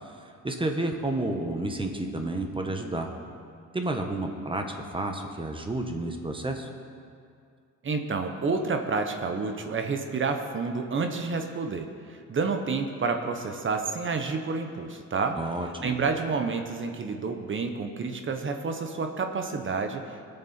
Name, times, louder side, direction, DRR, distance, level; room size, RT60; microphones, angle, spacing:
voice 1, 0.4-3.1 3.7-4.6 4.9-6.7 15.4-16.0, right 2 dB, 15° right, 4 dB, 1.2 m, -30 dB
voice 2, 7.8-15.4 15.8-20.3, right 4 dB, 40° right, 5 dB, 1.0 m, -29 dB
20.0 x 6.8 x 4.4 m, 2.3 s
cardioid pair, 90°, 30 cm